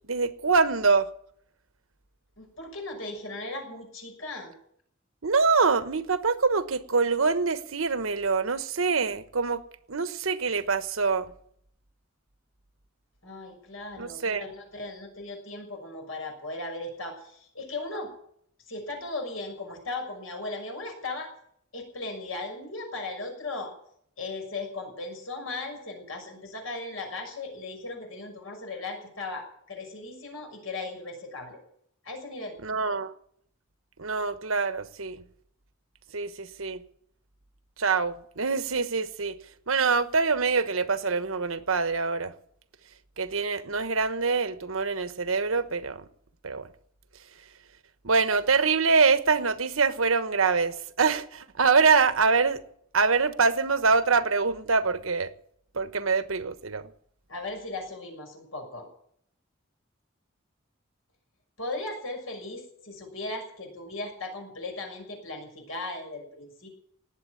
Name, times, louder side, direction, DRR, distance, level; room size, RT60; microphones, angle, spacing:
voice 1, 0.1-1.1 5.2-9.6 9.9-11.3 14.0-14.5 32.6-33.1 34.0-35.2 36.1-36.8 37.8-39.3 39.7-42.3 43.2-46.0 46.4-46.7 48.0-52.6 52.9-55.3 55.7-56.8, right 4 dB, 80° right, 1.2 m, -25 dB
voice 2, 2.4-4.5 13.2-18.1 18.7-21.3 21.7-23.7 24.2-31.6 32.0-32.6 57.3-58.9 61.6-66.7, left 2 dB, 80° left, 6.4 m, -37 dB
18.5 x 8.1 x 9.5 m
head